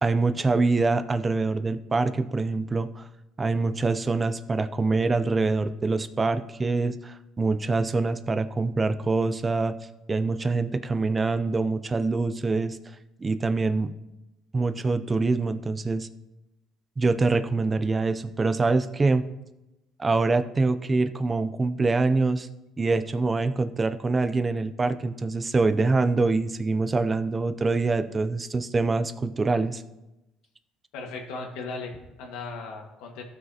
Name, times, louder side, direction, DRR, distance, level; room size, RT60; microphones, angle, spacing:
voice 1, 0.0-3.0 3.4-9.7 10.1-12.8 13.2-13.9 14.5-16.1 17.0-19.2 20.0-22.5 22.8-29.8, right 3 dB, 25° right, 10 dB, 0.5 m, -25 dB
voice 2, 30.9-33.2, left 3 dB, 85° left, 2 dB, 1.7 m, -37 dB
14.5 x 6.3 x 2.9 m, 0.96 s
cardioid pair, 110°, 0 cm